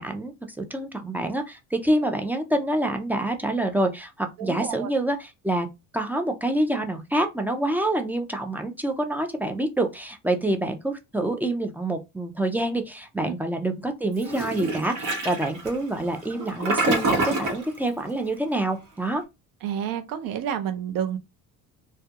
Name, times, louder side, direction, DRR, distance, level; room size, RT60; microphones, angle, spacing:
voice 1, 0.0-5.7 5.9-19.2, right 1 dB, 5° right, 0.3 m, -27 dB
voice 2, 4.4-4.9 13.2-13.3 19.6-21.2, right 9 dB, 75° right, 0.6 m, -30 dB
Toilet flush, 14.2-17.7, right 2 dB, 55° right, 1.0 m, -27 dB
2.3 x 2.2 x 2.7 m
cardioid pair, 115°, 34 cm